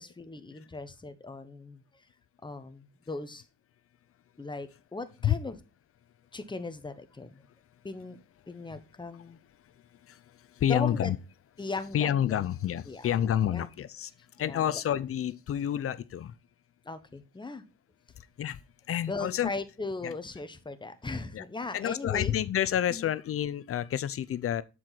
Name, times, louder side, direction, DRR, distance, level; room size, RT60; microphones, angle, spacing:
voice 1, 0.0-1.8 2.4-3.4 4.4-5.6 6.3-7.4 7.8-8.2 8.5-9.4 10.6-11.1 11.6-12.5 12.9-13.1 13.5-13.7 14.4-14.8 16.8-17.6 19.1-22.3 22.9-23.1, left 3 dB, 15° left, 0.9 m, -38 dB
voice 2, 10.6-11.2 11.9-14.1 14.4-16.3 18.4-18.6 18.9-19.5 20.0-20.1 21.3-21.4 21.7-24.6, left 10 dB, 50° left, 0.5 m, -29 dB
7.4 x 4.7 x 3.9 m
cardioid pair, 90°, 30 cm